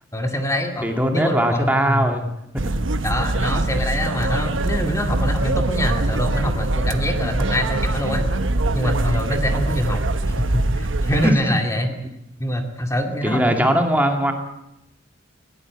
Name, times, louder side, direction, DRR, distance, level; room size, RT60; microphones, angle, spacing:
voice 1, 0.1-2.2 3.0-8.3 8.7-10.1 10.4-11.9 12.4-13.8, equal, 15° left, 3 dB, 2.3 m, -24 dB
voice 2, 0.8-2.3 2.5-2.7 11.2-11.3 13.1-14.3, right 1 dB, 10° right, 3 dB, 2.4 m, -20 dB
sound 1, 2.6-11.3, right 2 dB, 75° right, 1.2 m, -23 dB
20.5 x 18.0 x 8.7 m, 0.84 s
head